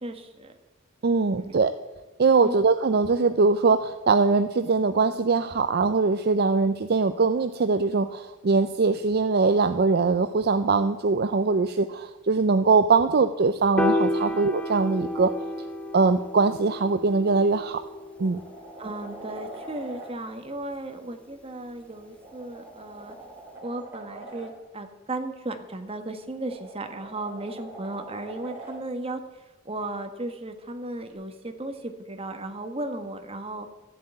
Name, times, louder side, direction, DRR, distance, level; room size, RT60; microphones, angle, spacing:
voice 1, 0.0-0.5 1.4-1.5 2.4-2.5 14.2-14.4 18.8-23.1 23.6-29.2 29.6-33.7, right 2 dB, 25° right, 6 dB, 1.2 m, -35 dB
voice 2, 1.0-1.7 2.2-15.3 15.9-17.8 18.2-18.4, right 4 dB, 45° right, 10 dB, 0.5 m, -22 dB
Piano, 13.8-20.1, left 1 dB, 5° left, 0.7 m, -31 dB
sound 1, 17.2-17.4 17.8-20.1 21.8-24.5 26.0-28.8 31.1-31.2, right 2 dB, 10° right, 3.6 m, -44 dB
13.0 x 7.6 x 8.8 m, 1.2 s
head